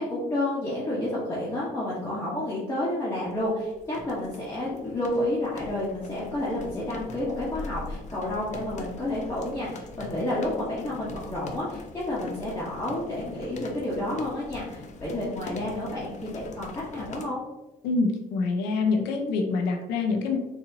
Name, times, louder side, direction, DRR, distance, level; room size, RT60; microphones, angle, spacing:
voice 1, 0.0-17.4, left 1 dB, 15° left, -9 dB, 1.0 m, -30 dB
sound 1, 3.3-17.2, left 3 dB, 45° left, 0.5 m, -42 dB
voice 2, 17.8-20.4, left 4 dB, 90° left, 2 dB, 0.7 m, -25 dB
4.1 x 2.7 x 2.7 m, 0.99 s
cardioid pair, 110°, 17 cm